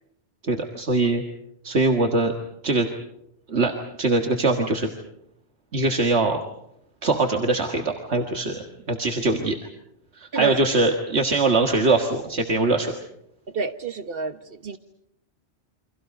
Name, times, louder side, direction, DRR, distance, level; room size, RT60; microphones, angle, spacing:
voice 1, 0.4-1.2 1.6-2.3 2.6-2.9 3.5-3.7 4.0-4.9 5.7-6.4 7.0-9.6 10.2-12.9, right 3 dB, 75° right, 2.0 m, -22 dB
voice 2, 13.5-14.8, right 4 dB, 60° right, 1.5 m, -29 dB
29.5 x 25.0 x 5.3 m
omnidirectional pair, 1.1 m